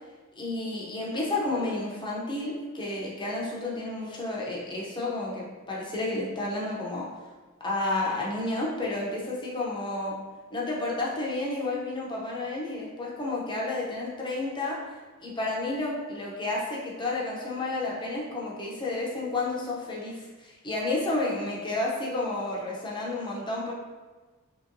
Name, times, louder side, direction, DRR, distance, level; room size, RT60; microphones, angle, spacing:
voice 1, 0.4-7.1 7.6-10.2 10.5-14.8 15.2-23.7, left 2 dB, 20° left, -4 dB, 0.6 m, -31 dB
2.9 x 2.8 x 2.6 m, 1.3 s
head